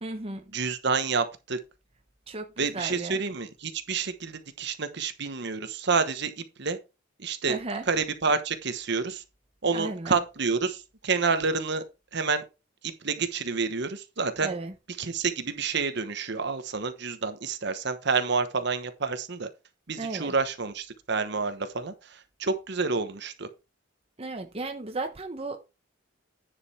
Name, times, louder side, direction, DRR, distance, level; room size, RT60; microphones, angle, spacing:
voice 1, 0.0-0.4 2.3-3.2 7.5-7.8 9.7-10.2 14.4-14.7 20.0-20.3 24.2-25.6, right 3 dB, 30° right, 0.9 m, -34 dB
voice 2, 0.5-1.6 2.6-6.8 7.2-7.6 7.9-9.2 9.6-11.8 12.1-12.4 12.8-14.6 15.0-19.5 19.9-23.5, right 4 dB, 55° right, 1.1 m, -29 dB
10.0 x 5.3 x 4.2 m
head